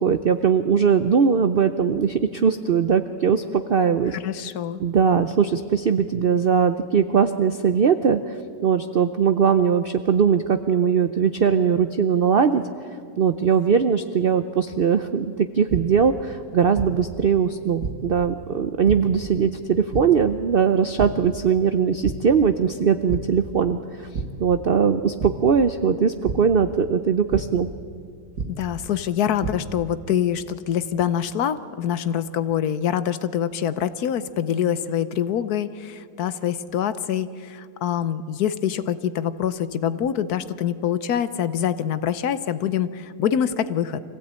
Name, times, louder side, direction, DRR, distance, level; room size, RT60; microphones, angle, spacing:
voice 1, 0.0-4.2 4.8-8.4 8.6-12.6 13.2-24.1 24.4-27.7, right 6 dB, 75° right, 10 dB, 0.5 m, -20 dB
voice 2, 4.1-4.8 28.6-44.0, left 9 dB, 65° left, 13 dB, 1.2 m, -25 dB
sound 1, 15.7-15.8 16.7-16.9 17.8-17.9 18.9-19.0 19.9-20.0 21.0-21.1 21.5-21.7 22.0-22.1 23.1-23.2 24.1-24.3 25.2-25.3 26.2-26.3 27.3-27.4 28.4-28.5 29.2-29.5, right 6 dB, 90° right, 2.6 m, -27 dB
25.0 x 16.0 x 8.8 m, 2.2 s
omnidirectional pair, 1.8 m